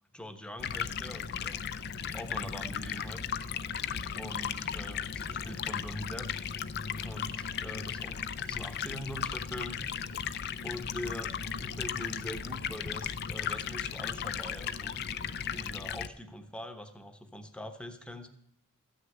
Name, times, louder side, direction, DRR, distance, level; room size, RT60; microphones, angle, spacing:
voice 1, 0.1-1.6 2.1-3.2 4.2-6.3 7.0-9.8 10.6-15.0 15.5-18.3, left 1 dB, 5° left, 8 dB, 1.0 m, -43 dB
Stream, 0.6-16.1, left 7 dB, 50° left, 0.5 m, -36 dB
14.0 x 6.5 x 9.0 m, 0.75 s
head